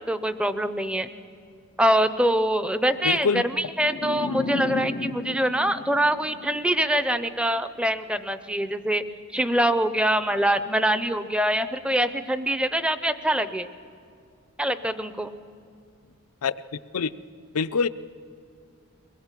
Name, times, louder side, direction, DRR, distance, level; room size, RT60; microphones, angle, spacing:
voice 1, 0.1-1.1 1.8-9.0 9.3-13.7 14.6-15.3, right 1 dB, 5° right, 12 dB, 0.6 m, -24 dB
voice 2, 3.0-3.5 16.4-16.5 16.9-17.1 17.5-17.9, left 5 dB, 90° left, 14 dB, 0.6 m, -24 dB
sound 1, 3.8-6.9, left 3 dB, 40° left, 0.5 m, -33 dB
22.5 x 20.0 x 7.4 m, 2.3 s
head